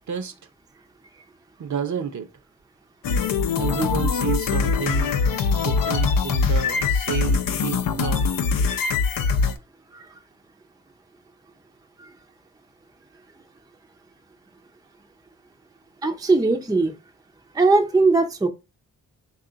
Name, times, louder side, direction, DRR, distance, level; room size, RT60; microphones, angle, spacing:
voice 1, 1.6-2.3 3.6-8.2, right 8 dB, 55° right, 0.7 m, -30 dB
sound 1, 3.0-9.5, left 5 dB, 70° left, 0.6 m, -22 dB
voice 2, 16.0-16.9 17.5-18.5, right 3 dB, 10° right, 0.5 m, -19 dB
3.6 x 2.4 x 3.9 m
cardioid pair, 80°, 35 cm